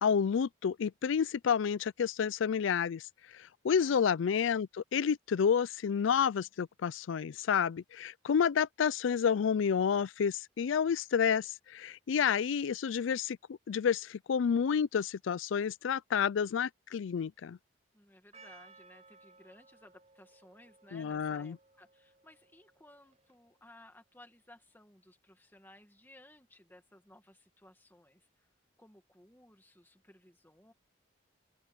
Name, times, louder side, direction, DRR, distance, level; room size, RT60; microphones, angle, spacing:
voice 1, 0.0-3.0 3.6-17.6 20.9-21.6, left 7 dB, 80° left, 0.4 m, -30 dB
voice 2, 17.9-28.5 28.8-30.7, left 1 dB, 10° left, 1.9 m, -59 dB
Percussion, 18.3-23.6, right 3 dB, 35° right, 5.8 m, -60 dB
open air
head